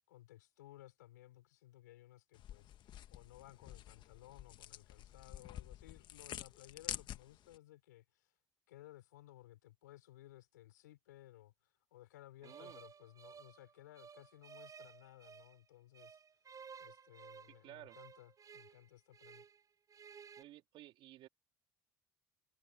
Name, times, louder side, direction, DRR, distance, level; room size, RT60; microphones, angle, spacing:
voice 1, 0.1-8.3 8.7-16.2 16.8-19.4, left 15 dB, 85° left, 4.5 m, -59 dB
sound 1, 2.3-7.6, left 12 dB, 55° left, 1.5 m, -49 dB
sound 2, 12.4-15.6 15.9-19.6 19.9-20.4, right 6 dB, 40° right, 6.1 m, -56 dB
voice 2, 12.4-12.8 17.6-18.0 20.4-21.3, right 15 dB, 65° right, 3.4 m, -55 dB
hypercardioid pair, 65°, 9 cm